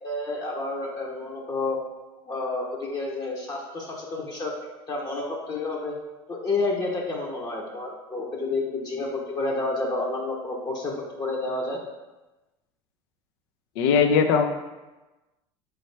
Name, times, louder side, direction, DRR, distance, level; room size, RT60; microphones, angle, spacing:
voice 1, 0.0-1.8 2.3-4.5 4.9-5.9 6.3-11.8, left 2 dB, 30° left, -2 dB, 0.8 m, -30 dB
voice 2, 13.8-14.4, left 6 dB, 75° left, 6 dB, 0.4 m, -19 dB
4.3 x 3.1 x 3.2 m, 1.1 s
supercardioid pair, 95°, 13 cm